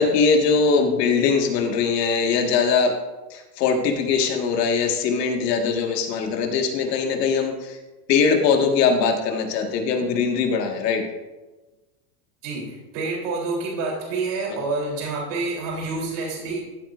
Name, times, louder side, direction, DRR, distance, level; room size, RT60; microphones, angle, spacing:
voice 1, 0.0-2.9 3.3-7.8 8.1-11.0, left 5 dB, 70° left, 3 dB, 2.0 m, -21 dB
voice 2, 12.4-16.6, right 3 dB, 65° right, -2 dB, 3.7 m, -28 dB
15.0 x 8.3 x 2.6 m, 1.2 s
supercardioid pair, 125°, 50 cm